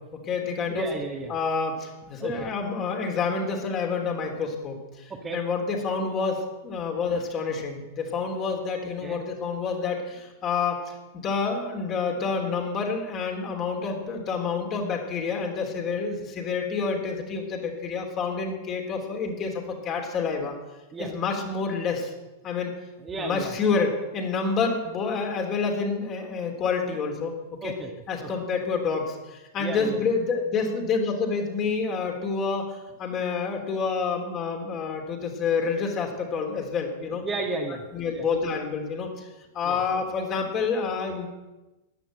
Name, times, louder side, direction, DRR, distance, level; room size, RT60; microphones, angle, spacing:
voice 1, 0.1-0.9 1.3-10.8 11.1-20.6 21.0-22.1 22.4-22.7 23.2-27.3 27.6-27.7 28.1-37.2 37.9-39.3 39.5-41.3, left 5 dB, 35° left, 2 dB, 3.4 m, -28 dB
voice 2, 0.7-1.3 2.2-2.5 5.1-5.4 7.1-7.2 9.0-9.2 20.9-21.1 23.0-23.5 27.6-27.9 28.2-28.3 29.6-30.1 37.2-37.8 38.1-38.3 39.6-39.8, right 2 dB, 20° right, 1 dB, 2.0 m, -33 dB
14.0 x 10.0 x 7.8 m, 1.1 s
figure-of-eight pair, 95°, 0 cm